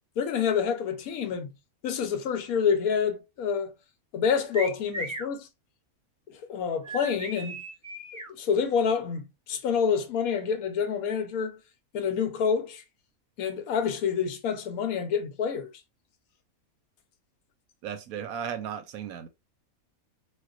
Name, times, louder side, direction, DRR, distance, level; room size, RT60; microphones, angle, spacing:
voice 1, 0.2-1.5 1.8-3.7 4.1-5.5 6.3-7.6 8.4-11.6 11.9-12.8 13.4-15.7, left 6 dB, 80° left, 1.1 m, -27 dB
sound 1, 4.5-5.3 6.8-8.3, right 1 dB, 20° right, 0.5 m, -36 dB
voice 2, 17.8-19.3, right 8 dB, 80° right, 1.1 m, -35 dB
4.3 x 2.3 x 2.4 m
omnidirectional pair, 1.5 m